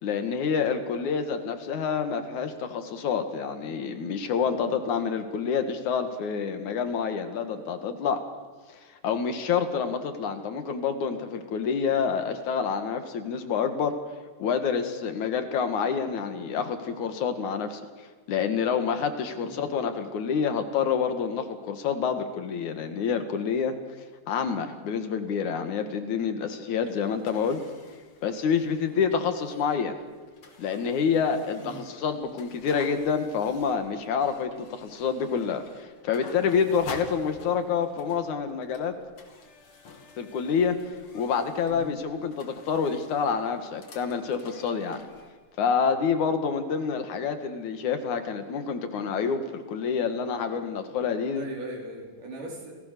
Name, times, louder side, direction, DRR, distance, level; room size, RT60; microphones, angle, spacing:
voice 1, 0.0-8.3 8.7-14.0 14.4-23.8 24.3-27.6 28.2-30.0 30.6-39.0 40.2-45.0 45.6-51.5, left 6 dB, 70° left, 8 dB, 3.1 m, -28 dB
sound 1, 26.8-45.3, left 4 dB, 45° left, 3.1 m, -49 dB
voice 2, 51.4-52.7, right 1 dB, 85° right, 0 dB, 6.1 m, -39 dB
29.5 x 19.5 x 6.8 m, 1.4 s
omnidirectional pair, 3.6 m